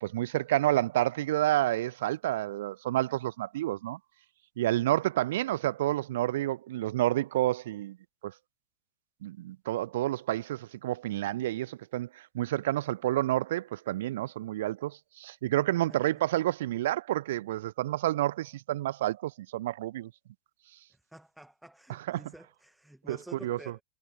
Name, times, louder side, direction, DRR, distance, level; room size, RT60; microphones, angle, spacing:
voice 1, 0.0-4.0 4.6-8.0 8.2-8.3 9.2-20.1 21.9-22.2 23.1-23.2 23.4-23.6, right 15 dB, 55° right, 0.4 m, -29 dB
voice 2, 15.9-16.2 20.9-23.8, right 1 dB, 5° right, 2.2 m, -50 dB
figure-of-eight pair, 90°, 0 cm